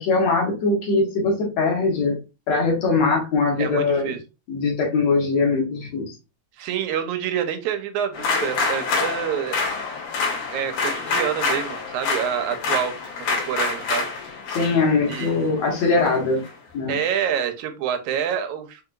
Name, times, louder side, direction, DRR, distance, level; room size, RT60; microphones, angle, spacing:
voice 1, 0.0-2.2 2.5-4.1 4.5-6.1 14.5-16.4 16.7-17.0, left 3 dB, 65° left, 0 dB, 2.4 m, -21 dB
voice 2, 3.6-4.2 6.6-9.6 10.5-12.9 13.3-14.1 15.1-15.6 16.9-18.8, right 9 dB, 85° right, 7 dB, 2.1 m, -27 dB
sound 1, 8.1-16.5, left 4 dB, 85° left, 3.0 m, -27 dB
5.6 x 2.9 x 2.5 m, 0.28 s
omnidirectional pair, 3.4 m